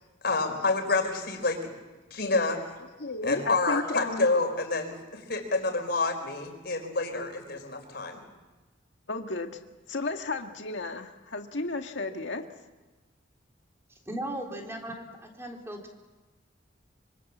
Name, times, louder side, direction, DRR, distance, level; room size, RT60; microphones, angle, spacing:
voice 1, 0.2-1.6 2.1-2.6 3.2-8.2, left 3 dB, 60° left, 4 dB, 4.6 m, -28 dB
voice 2, 3.0-4.3 9.1-9.6 9.9-12.4, left 2 dB, 75° left, 5 dB, 1.8 m, -33 dB
voice 3, 14.1-16.0, right 1 dB, 15° right, 1 dB, 3.6 m, -37 dB
25.0 x 25.0 x 7.4 m, 1.2 s
head